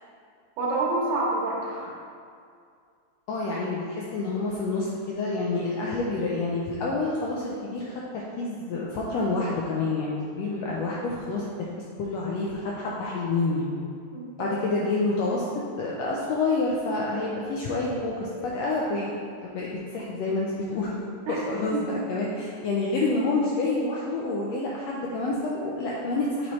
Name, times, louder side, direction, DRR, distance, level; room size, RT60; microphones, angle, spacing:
voice 1, 0.6-1.9 14.1-14.5 21.3-21.4 21.7-22.2, right 2 dB, 75° right, -5 dB, 2.5 m, -28 dB
voice 2, 3.3-11.4 12.0-13.7 14.4-15.5 15.8-19.1 19.4-20.9 21.3-26.5, left 3 dB, 85° left, -4 dB, 1.5 m, -28 dB
7.4 x 4.1 x 3.1 m, 2.3 s
omnidirectional pair, 3.5 m